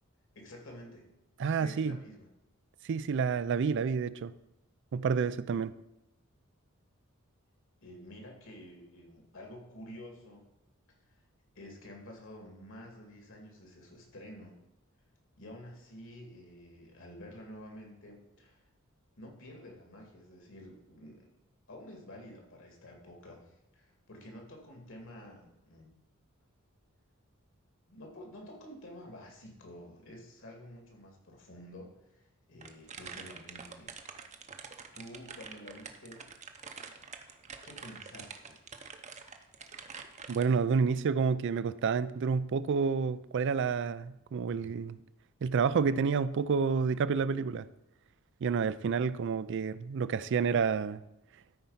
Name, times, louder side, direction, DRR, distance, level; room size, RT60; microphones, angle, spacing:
voice 1, 0.4-1.1 1.6-2.3 7.8-10.4 11.1-11.2 11.5-14.6 15.4-18.7 19.2-21.3 21.7-26.0 27.9-34.0 34.4-34.7 34.9-36.3 37.6-38.6, left 1 dB, 65° left, 2.3 m, -50 dB
voice 2, 1.4-2.0 2.9-4.3 4.9-5.7 40.3-45.0 45.4-47.7 48.4-51.0, right 5 dB, 55° right, 0.4 m, -29 dB
sound 1, 32.6-40.4, right 5 dB, 35° right, 0.7 m, -46 dB
13.0 x 4.5 x 5.6 m
head